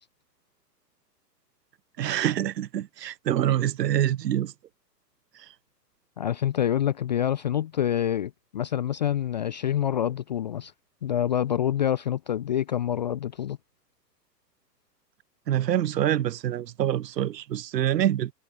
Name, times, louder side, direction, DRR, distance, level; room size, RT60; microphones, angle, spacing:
voice 1, 2.0-4.5 15.5-18.3, right 11 dB, 75° right, 0.6 m, -25 dB
voice 2, 6.2-10.7 11.0-13.6, left 10 dB, 30° left, 0.4 m, -26 dB
figure-of-eight pair, 115°, 50 cm